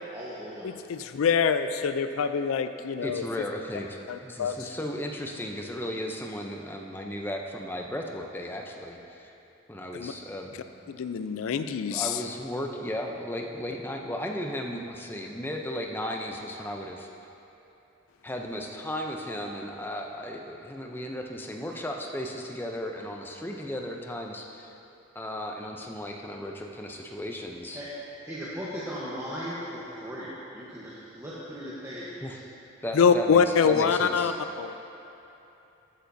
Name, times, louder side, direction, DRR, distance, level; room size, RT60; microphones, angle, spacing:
voice 1, 0.1-0.7 27.7-27.9 28.2-32.4, equal, 15° right, -9 dB, 0.9 m, -38 dB
voice 2, 0.6-3.2 4.1-4.6 9.9-10.1 10.9-12.2 32.9-34.3 34.6-34.8, left 6 dB, 90° left, 10 dB, 0.4 m, -25 dB
voice 3, 3.0-9.3 9.7-10.5 10.8-11.0 11.9-17.1 18.2-24.7 25.1-27.8 32.2-32.4 32.8-34.3, left 1 dB, 10° left, 1 dB, 0.5 m, -35 dB
14.0 x 9.1 x 2.7 m, 3.0 s
head